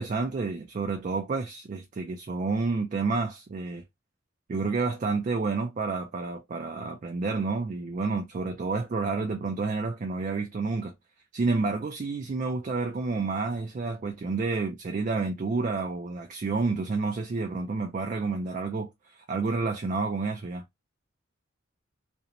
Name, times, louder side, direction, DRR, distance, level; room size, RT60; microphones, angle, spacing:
voice 1, 0.0-3.8 4.5-10.9 11.3-20.6, right 4 dB, 40° right, 0.3 m, -29 dB
2.5 x 2.1 x 2.8 m
head